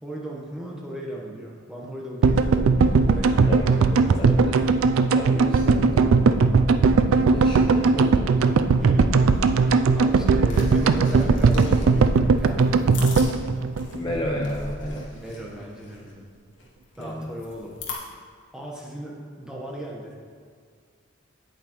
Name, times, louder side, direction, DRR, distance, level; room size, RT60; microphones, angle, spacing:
voice 1, 0.0-4.7 8.7-9.4 9.9-12.6 15.1-16.3 17.0-17.8 18.5-20.2, right 1 dB, 5° right, -3 dB, 1.1 m, -37 dB
sound 1, 2.2-14.5 14.7-14.8 15.0-15.1, right 4 dB, 85° right, 0.4 m, -19 dB
voice 2, 3.4-3.8 4.2-4.6 5.0-6.1 7.3-8.3 10.6-10.7 13.9-15.1 17.0-17.3, left 1 dB, 25° left, -3 dB, 0.6 m, -32 dB
sound 2, 9.2-17.9, left 3 dB, 60° left, 1.6 m, -41 dB
8.7 x 8.4 x 3.0 m, 2.1 s
head